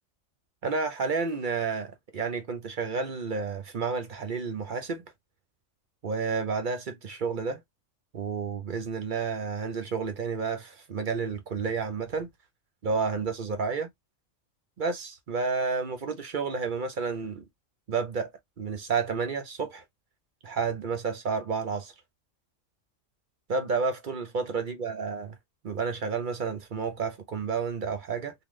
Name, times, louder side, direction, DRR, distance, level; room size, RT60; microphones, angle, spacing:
voice 1, 0.6-5.1 6.0-7.6 8.1-12.3 12.8-13.9 14.8-17.4 17.9-18.3 18.6-19.8 20.4-21.9 23.5-25.4 25.6-28.3, right 5 dB, 45° right, 0.8 m, -30 dB
3.8 x 2.2 x 3.1 m
omnidirectional pair, 1.3 m